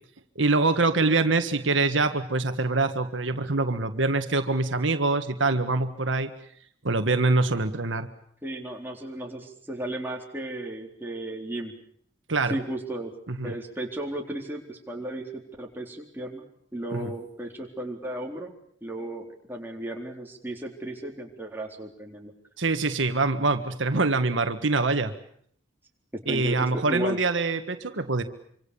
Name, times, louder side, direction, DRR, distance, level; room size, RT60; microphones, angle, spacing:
voice 1, 0.4-6.3 6.8-8.1 12.3-12.6 13.3-13.5 16.9-17.1 22.6-25.1 26.3-28.2, right 3 dB, 85° right, 8 dB, 1.7 m, -24 dB
voice 2, 8.4-11.7 12.5-13.1 13.4-16.4 16.7-18.5 18.8-22.3 26.1-27.2, right 1 dB, 10° right, 0 dB, 4.1 m, -35 dB
26.0 x 25.5 x 7.1 m, 0.65 s
head